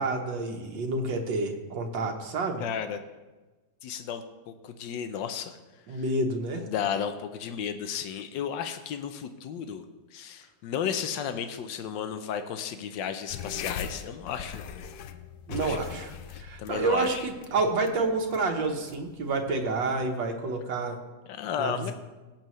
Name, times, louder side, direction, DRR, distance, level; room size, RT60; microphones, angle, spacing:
voice 1, 0.0-2.6 5.9-6.7 15.5-21.0 21.6-21.9, right 3 dB, 85° right, 3 dB, 1.9 m, -29 dB
voice 2, 2.6-3.0 3.8-5.6 5.9-6.0 6.6-9.8 10.1-14.7 15.5-15.8 16.3-17.2 21.3-21.9, left 8 dB, 85° left, 8 dB, 1.4 m, -33 dB
sound 1, 13.3-20.2, left 8 dB, 70° left, 1.0 m, -41 dB
18.0 x 7.4 x 3.1 m, 1.2 s
omnidirectional pair, 1.9 m